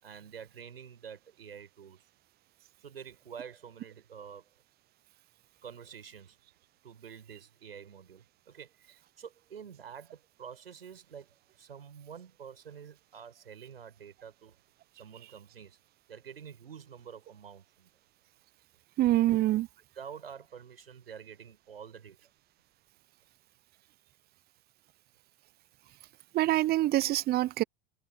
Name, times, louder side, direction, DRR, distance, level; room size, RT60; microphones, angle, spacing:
voice 1, 0.0-2.1 2.8-4.5 5.6-6.4 6.8-14.6 14.9-15.8 16.1-17.9 19.9-22.3, right 7 dB, 80° right, 7.2 m, -48 dB
voice 2, 19.0-19.7 26.3-27.6, right 15 dB, 35° right, 0.7 m, -25 dB
figure-of-eight pair, 80°, 29 cm